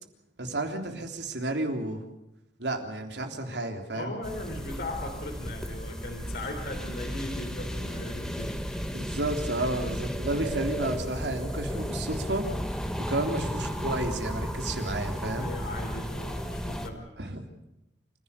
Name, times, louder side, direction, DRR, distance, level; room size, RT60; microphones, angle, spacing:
voice 1, 0.4-2.0 2.6-4.2 8.9-12.4 13.1-15.5 17.2-17.4, right 2 dB, 80° right, 4 dB, 3.5 m, -31 dB
voice 2, 3.9-9.1 9.6-9.7 15.4-17.1, left 2 dB, 60° left, 2 dB, 3.6 m, -38 dB
sound 1, 4.2-16.9, equal, 5° left, 1.6 m, -34 dB
28.0 x 16.0 x 7.0 m, 0.90 s
head